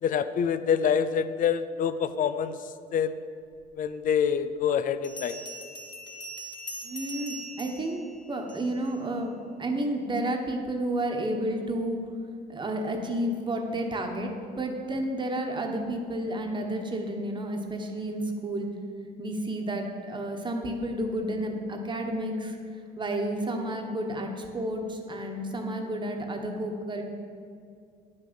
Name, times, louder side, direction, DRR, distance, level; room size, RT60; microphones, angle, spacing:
voice 1, 0.0-2.6 2.9-3.2 3.8-5.4, left 7 dB, 50° left, 13 dB, 0.6 m, -26 dB
Bell, 3.8-3.9 5.0-8.9, right 1 dB, 25° left, 1.7 m, -41 dB
voice 2, 6.8-8.0 8.3-12.0 12.5-18.7 19.2-22.6 23.0-27.0, right 1 dB, 25° right, 3 dB, 1.3 m, -31 dB
10.0 x 6.5 x 7.0 m, 2.4 s
cardioid pair, 110°, 17 cm